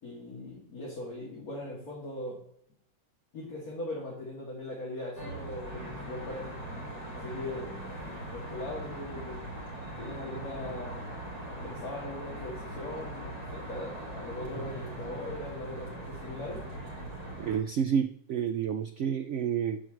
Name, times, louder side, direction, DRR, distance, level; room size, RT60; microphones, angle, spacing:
voice 1, 0.0-2.4 3.3-6.5 7.1-7.7 8.0-9.5 10.0-16.7, left 1 dB, 55° left, -5 dB, 2.7 m, -40 dB
Traffic noise roadway noise, 5.1-17.6, right 1 dB, 20° right, 2.9 m, -40 dB
voice 2, 17.4-19.8, right 8 dB, 75° right, 9 dB, 0.6 m, -29 dB
9.4 x 4.6 x 7.5 m, 0.70 s
omnidirectional pair, 1.8 m